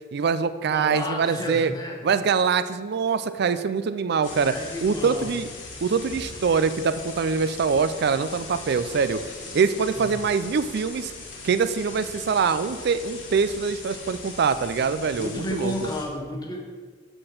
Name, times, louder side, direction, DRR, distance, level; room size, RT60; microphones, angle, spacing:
voice 1, 0.1-1.7 2.0-5.5 5.8-9.2 9.5-11.1 11.4-15.9, right 5 dB, 60° right, 12 dB, 0.4 m, -24 dB
voice 2, 0.7-2.0 4.3-5.3 10.0-10.1 15.1-16.6, left 1 dB, 20° left, 1 dB, 1.1 m, -32 dB
sound 1, 4.2-16.1, left 3 dB, 80° left, 1.4 m, -40 dB
7.7 x 4.3 x 6.5 m, 1.5 s
head